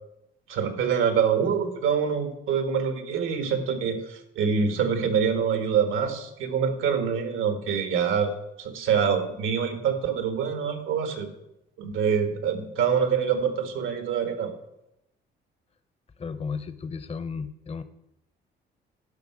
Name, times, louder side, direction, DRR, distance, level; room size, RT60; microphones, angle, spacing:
voice 1, 0.5-8.3 8.6-11.3 11.8-14.5, right 7 dB, 85° right, 7 dB, 1.7 m, -25 dB
voice 2, 16.2-17.8, left 5 dB, 30° left, 12 dB, 0.8 m, -34 dB
10.5 x 5.8 x 7.6 m, 0.85 s
cardioid pair, 90°, 20 cm